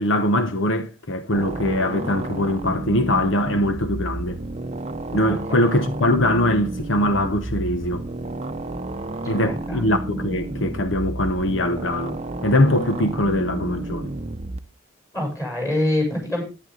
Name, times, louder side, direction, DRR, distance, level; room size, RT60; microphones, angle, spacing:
voice 1, 0.0-4.4 5.1-8.0 9.3-12.2 12.4-14.1, left 1 dB, 70° left, 1.0 m, -22 dB
sound 1, 1.3-14.6, right 2 dB, 30° right, 0.7 m, -31 dB
voice 2, 9.4-9.9 15.1-16.4, left 1 dB, 15° left, 7.4 m, -25 dB
11.0 x 10.5 x 3.9 m
head